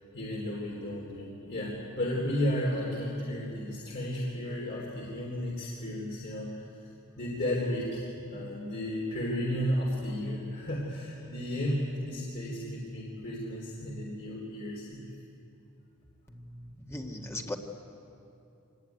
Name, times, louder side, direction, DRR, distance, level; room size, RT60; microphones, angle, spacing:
voice 1, 0.1-6.6 7.2-15.0, left 1 dB, 50° left, -4 dB, 3.6 m, -33 dB
voice 2, 16.3-17.6, left 1 dB, 10° left, 2 dB, 1.7 m, -39 dB
24.5 x 19.5 x 9.5 m, 2.7 s
head